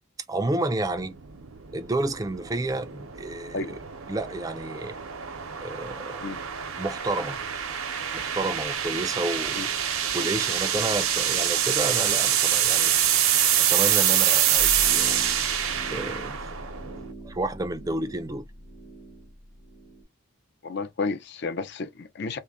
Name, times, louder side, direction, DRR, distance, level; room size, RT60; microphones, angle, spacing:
voice 1, 0.3-1.1 1.7-3.8 4.1-5.0 5.6-6.2 6.8-7.4 8.1-9.7 10.1-13.0 13.6-15.2 15.9-16.5 17.2-18.4, right 2 dB, 15° right, 0.4 m, -30 dB
sound 1, 0.9-17.1, right 9 dB, 80° right, 0.7 m, -26 dB
sound 2, 14.5-20.0, right 1 dB, 35° left, 1.1 m, -41 dB
voice 2, 20.6-22.4, left 4 dB, 55° left, 0.6 m, -31 dB
3.7 x 2.1 x 3.5 m
head